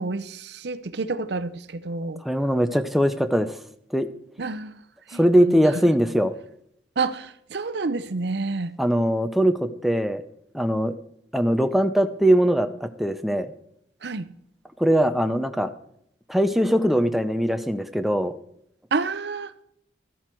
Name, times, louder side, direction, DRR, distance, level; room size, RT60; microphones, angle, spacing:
voice 1, 0.0-2.2 4.4-4.8 5.1-5.9 7.0-8.7 14.0-14.3 18.9-19.6, right 3 dB, 65° right, 0.6 m, -29 dB
voice 2, 2.2-3.6 3.9-4.1 5.1-6.3 8.8-10.2 10.5-10.9 11.3-13.5 14.8-15.7 16.3-18.3, equal, ahead, 0.5 m, -21 dB
13.0 x 10.5 x 4.5 m
head